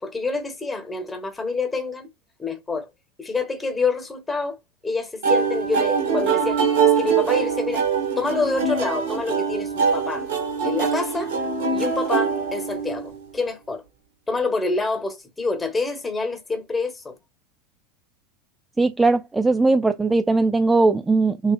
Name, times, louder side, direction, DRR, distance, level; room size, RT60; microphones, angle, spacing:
voice 1, 0.0-2.1 2.4-2.9 3.2-4.6 4.8-7.9 8.2-10.3 10.6-11.3 11.7-13.8 14.3-17.2, left 3 dB, 10° left, 1.2 m, -27 dB
sound 1, 5.2-13.2, right 6 dB, 60° right, 1.4 m, -23 dB
voice 2, 18.8-21.5, right 3 dB, 10° right, 0.3 m, -19 dB
6.5 x 2.7 x 2.4 m
figure-of-eight pair, 85°, 0 cm